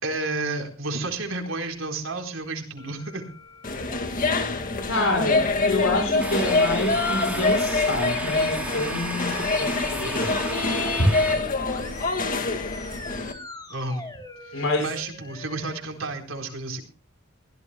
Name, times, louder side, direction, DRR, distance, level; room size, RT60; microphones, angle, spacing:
voice 1, 0.0-3.2 13.7-14.0 14.4-16.8, right 2 dB, 70° right, 3 dB, 4.1 m, -31 dB
sound 1, 2.8-15.8, left 2 dB, 20° left, 3.3 m, -42 dB
sound 2, 3.6-13.3, left 3 dB, 40° left, 1.9 m, -25 dB
voice 2, 4.9-10.3 14.5-14.9, left 2 dB, 80° left, 3 dB, 5.2 m, -27 dB
sound 3, 6.2-11.4, right 2 dB, 5° right, 3.5 m, -34 dB
22.5 x 16.5 x 2.2 m, 0.37 s
head